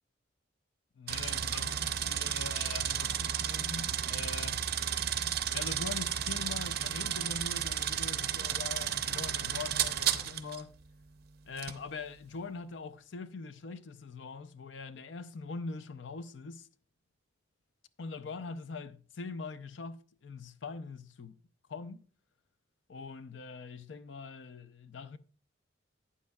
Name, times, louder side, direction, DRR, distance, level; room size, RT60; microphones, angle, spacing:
voice 1, 1.0-4.7 5.5-10.7 11.5-16.7 18.0-21.4 21.7-22.1 22.9-25.2, left 4 dB, 75° left, 0.6 m, -43 dB
sound 1, 1.1-10.6 11.6-11.8, right 9 dB, 55° right, 0.6 m, -33 dB
12.5 x 8.6 x 2.3 m
head